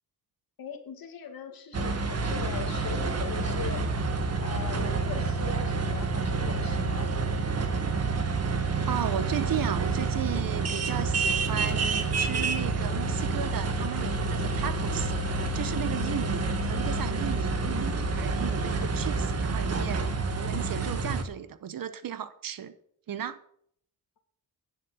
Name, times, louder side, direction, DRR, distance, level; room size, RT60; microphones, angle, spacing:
voice 1, 0.6-3.9 4.4-7.1, left 6 dB, 65° left, 2.0 m, -40 dB
sound 1, 1.7-21.2, right 3 dB, 40° right, 1.5 m, -28 dB
voice 2, 8.9-20.1 20.3-22.7 23.1-23.4, right 9 dB, 65° right, 1.1 m, -35 dB
10.0 x 7.7 x 7.8 m
wide cardioid pair, 135°, 37 cm